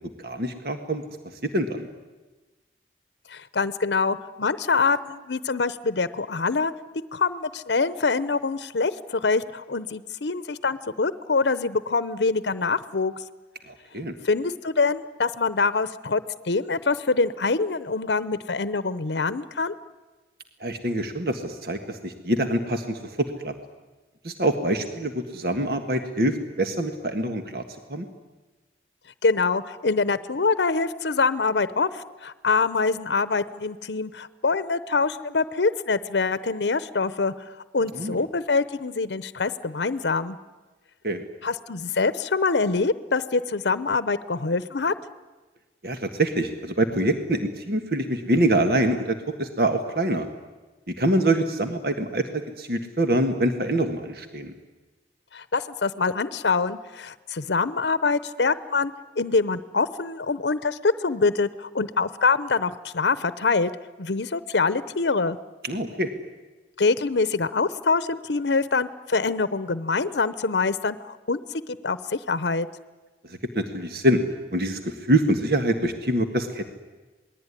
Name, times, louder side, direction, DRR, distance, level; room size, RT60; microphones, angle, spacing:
voice 1, 0.2-1.0 1.4-1.9 13.7-14.1 20.6-23.5 24.2-27.6 27.9-28.1 37.9-38.2 41.0-41.2 45.8-50.3 50.9-52.3 52.6-54.5 65.6-66.1 73.3-74.2 74.5-76.6, right 1 dB, 60° right, 6 dB, 1.7 m, -25 dB
voice 2, 3.3-6.7 7.1-13.1 14.2-19.7 29.2-37.3 37.7-40.4 41.4-44.9 55.3-63.7 64.0-65.4 66.8-71.4 71.8-72.7, left 4 dB, 80° left, 15 dB, 0.8 m, -25 dB
27.5 x 20.0 x 9.9 m, 1.2 s
head